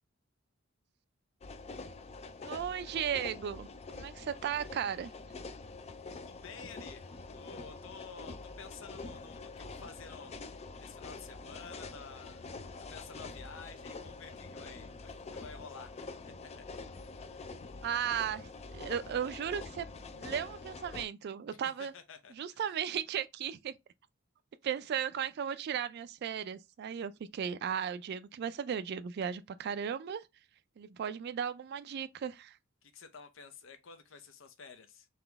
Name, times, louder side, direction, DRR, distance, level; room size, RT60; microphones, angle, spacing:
sound 1, 1.4-21.1, left 3 dB, 30° left, 0.4 m, -46 dB
voice 1, 2.4-3.7 4.0-5.1 17.8-19.9 20.1-21.9 22.4-23.7 24.6-30.3 30.8-32.6, right 8 dB, 55° right, 0.3 m, -36 dB
voice 2, 6.1-10.4 10.8-12.4 12.9-15.9 16.4-16.6 17.2-17.3 21.5-22.6 32.8-35.1, left 5 dB, 70° left, 0.7 m, -51 dB
4.0 x 2.9 x 3.4 m
head